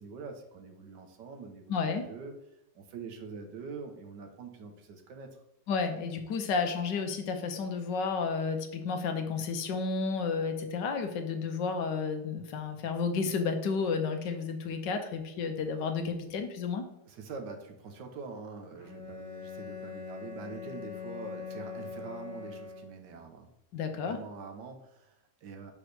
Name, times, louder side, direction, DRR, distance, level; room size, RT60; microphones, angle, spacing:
voice 1, 0.0-2.3 2.7-5.4 17.1-23.5 23.9-25.7, right 4 dB, 80° right, 5 dB, 1.5 m, -44 dB
voice 2, 1.7-2.1 5.7-16.9 23.7-24.2, left 5 dB, 80° left, 6 dB, 1.5 m, -32 dB
Bowed string instrument, 18.8-23.2, left 5 dB, 15° right, 1.0 m, -42 dB
6.0 x 5.3 x 3.3 m, 0.85 s
omnidirectional pair, 1.9 m